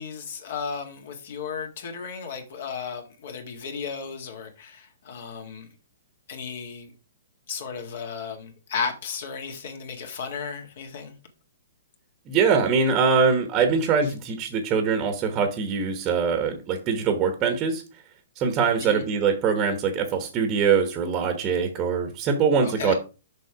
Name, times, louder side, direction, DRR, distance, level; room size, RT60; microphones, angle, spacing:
voice 1, 0.0-5.7 6.3-6.9 7.5-11.1 18.8-19.0 22.8-22.9, left 6 dB, 55° left, 1.9 m, -34 dB
voice 2, 12.3-17.8 18.4-22.9, right 5 dB, 20° right, 1.1 m, -23 dB
6.7 x 5.2 x 4.7 m
hypercardioid pair, 160°, 0 cm